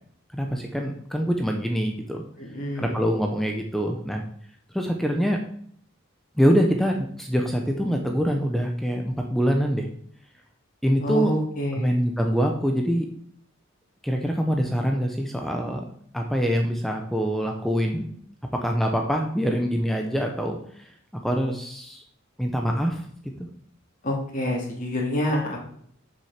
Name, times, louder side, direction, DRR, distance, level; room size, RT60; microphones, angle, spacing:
voice 1, 0.3-2.2 2.8-4.2 4.7-5.4 6.3-9.9 10.8-11.3 11.8-13.1 14.0-15.8 16.1-18.1 18.5-22.0 22.4-23.1 23.4-23.5, equal, ahead, 2 dB, 0.8 m, -24 dB
voice 2, 2.4-3.0 11.0-12.0 24.0-25.6, left 1 dB, 40° left, -2 dB, 2.5 m, -27 dB
7.3 x 6.5 x 6.7 m, 0.62 s
head